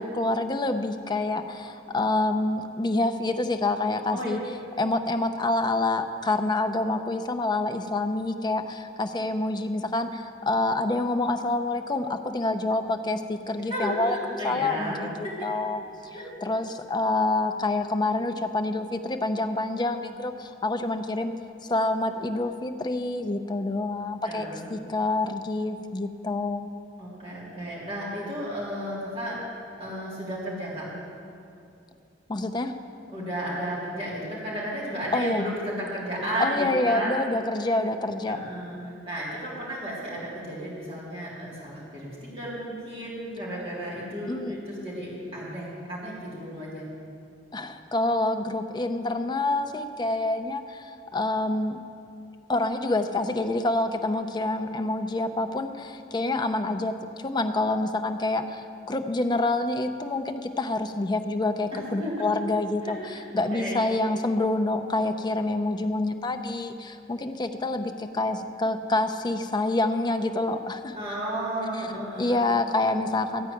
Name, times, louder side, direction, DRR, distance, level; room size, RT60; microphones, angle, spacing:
voice 1, 0.0-4.4 4.8-14.2 14.4-15.8 16.4-21.3 21.7-26.7 32.3-32.7 35.1-35.5 36.4-38.4 44.3-44.5 47.5-51.8 52.5-56.9 57.2-71.0 72.2-73.5, left 2 dB, 25° left, 7 dB, 0.5 m, -27 dB
voice 2, 13.7-15.3 16.1-16.2 24.2-24.7 27.0-29.4 29.8-30.9 33.1-37.2 38.3-38.8 39.0-46.8 61.7-62.1 62.8-63.2 63.5-63.8 70.9-72.4, right 1 dB, 35° right, -8 dB, 3.4 m, -33 dB
14.0 x 4.7 x 9.1 m, 2.5 s
head